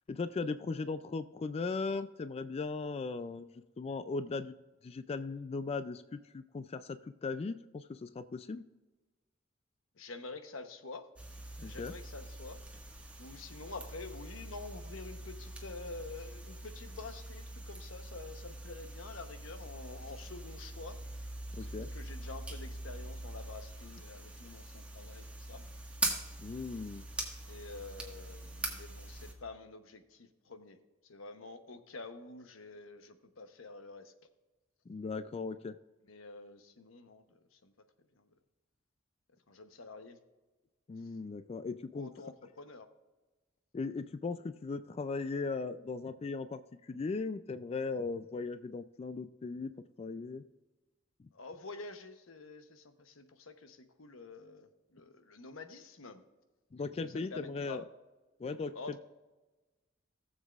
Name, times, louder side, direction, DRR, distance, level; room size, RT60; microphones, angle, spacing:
voice 1, 0.1-3.5 3.8-4.6 4.8-8.6 11.6-11.9 21.5-21.9 26.4-27.0 34.9-35.8 40.9-42.1 43.7-49.7 50.0-50.4 51.2-51.3 56.7-57.8 58.4-58.7, left 4 dB, 30° left, 11 dB, 0.3 m, -38 dB
voice 2, 10.0-11.1 11.6-12.6 13.2-21.0 21.7-25.6 27.5-30.8 31.0-34.1 36.1-37.7 38.1-38.3 39.5-40.2 41.9-42.9 51.3-56.2 57.0-57.8 58.7-59.0, left 3 dB, 90° left, 8 dB, 0.9 m, -48 dB
sound 1, 11.2-29.3, right 1 dB, 5° right, 1.6 m, -43 dB
18.0 x 7.3 x 2.4 m, 1.2 s
head